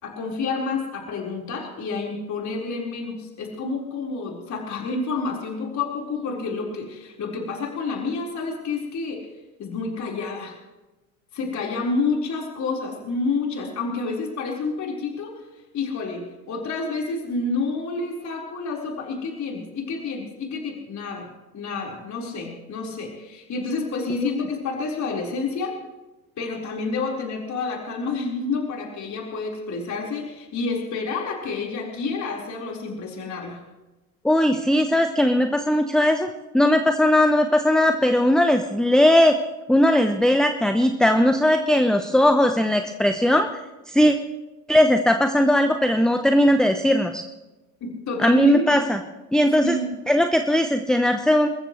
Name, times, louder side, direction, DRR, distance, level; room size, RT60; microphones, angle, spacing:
voice 1, 0.0-9.3 9.6-10.5 11.3-15.4 15.7-25.8 26.4-33.6 47.8-48.7 49.6-50.0, left 4 dB, 40° left, -1 dB, 4.5 m, -29 dB
voice 2, 34.2-36.3 36.5-39.4 39.7-43.5 43.9-44.2 44.7-47.2 48.2-49.0 49.3-49.8 50.1-51.5, left 1 dB, ahead, 7 dB, 0.9 m, -18 dB
29.5 x 15.0 x 3.2 m, 1.1 s
hypercardioid pair, 75°, 43 cm